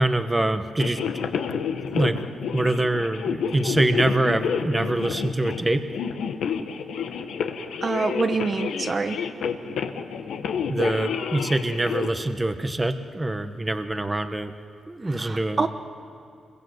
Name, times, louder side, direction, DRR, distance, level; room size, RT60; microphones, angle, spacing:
voice 1, 0.0-1.3 1.9-2.2 2.5-5.8 10.7-14.5 14.9-15.6, right 1 dB, 15° right, 8 dB, 1.1 m, -24 dB
sound 1, 0.8-12.1, left 6 dB, 90° left, 1.3 m, -29 dB
voice 2, 7.8-9.2 15.0-15.7, right 4 dB, 40° right, 7 dB, 1.1 m, -26 dB
25.5 x 22.5 x 8.0 m, 2.4 s
cardioid pair, 95°, 0 cm